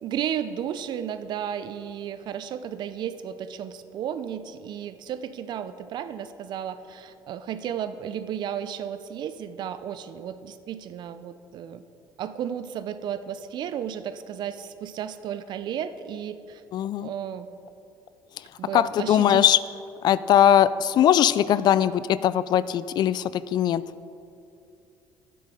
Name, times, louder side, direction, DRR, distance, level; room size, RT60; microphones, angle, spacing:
voice 1, 0.0-11.8 12.2-16.6 17.0-17.5 18.6-19.4, right 9 dB, 60° right, 12 dB, 0.6 m, -33 dB
voice 2, 16.7-17.1 18.7-19.6 20.0-23.8, left 10 dB, 60° left, 17 dB, 0.3 m, -20 dB
10.5 x 7.8 x 5.0 m, 2.6 s
supercardioid pair, 75°, 8 cm